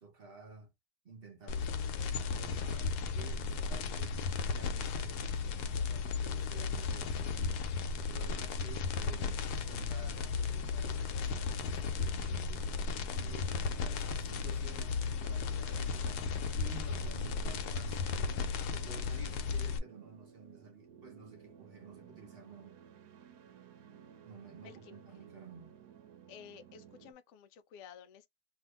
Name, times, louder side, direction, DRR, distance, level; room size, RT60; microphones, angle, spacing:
voice 1, 0.0-0.7 1.0-1.9 2.3-4.2 4.5-7.7 8.0-12.6 13.2-22.7 24.2-25.7, right 4 dB, 45° right, 0.9 m, -52 dB
sound 1, 1.5-19.8, left 5 dB, 85° left, 1.1 m, -35 dB
sound 2, 9.6-27.1, right 8 dB, 90° right, 1.2 m, -57 dB
voice 2, 24.6-25.0 26.3-28.3, left 7 dB, 65° left, 0.8 m, -53 dB
2.7 x 2.5 x 3.4 m
omnidirectional pair, 1.6 m